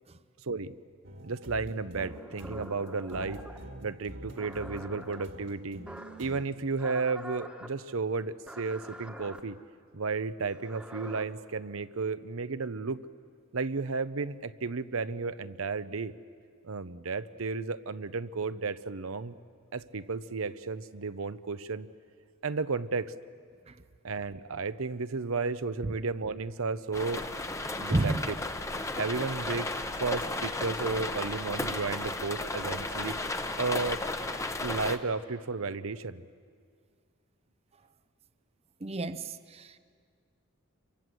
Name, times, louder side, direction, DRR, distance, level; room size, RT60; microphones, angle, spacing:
sound 1, 1.0-6.5, right 1 dB, 55° right, 2.0 m, -46 dB
voice 1, 1.2-3.4 3.8-5.8 6.2-9.6 9.9-13.0 13.5-16.1 16.6-19.3 19.7-21.9 22.4-23.1 24.0-27.2 27.8-28.3 29.0-29.7 30.0-33.2 33.6-34.0 34.6-36.2, right 4 dB, 80° right, 0.8 m, -33 dB
sound 2, 2.0-3.7 4.4-5.2 5.9-6.3 6.8-7.7 8.5-9.4 10.5-11.2, equal, 5° right, 1.3 m, -45 dB
sound 3, 26.9-35.0, left 2 dB, 15° left, 0.9 m, -34 dB
voice 2, 27.9-28.3 38.8-39.8, right 2 dB, 30° right, 0.6 m, -31 dB
28.0 x 24.0 x 7.7 m
head